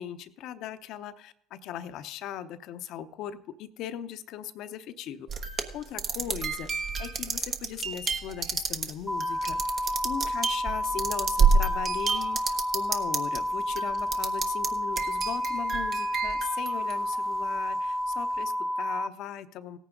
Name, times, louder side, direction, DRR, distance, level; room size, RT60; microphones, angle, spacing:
voice 1, 0.0-5.5 5.7-19.8, left 10 dB, 65° left, 11 dB, 0.7 m, -39 dB
sound 1, 5.3-13.4 13.7-14.7 15.0-17.4, right 5 dB, 50° right, 1.2 m, -29 dB
sound 2, 9.1-19.1, equal, ahead, 0.5 m, -30 dB
17.0 x 9.1 x 3.8 m, 0.76 s
hypercardioid pair, 70°, 0 cm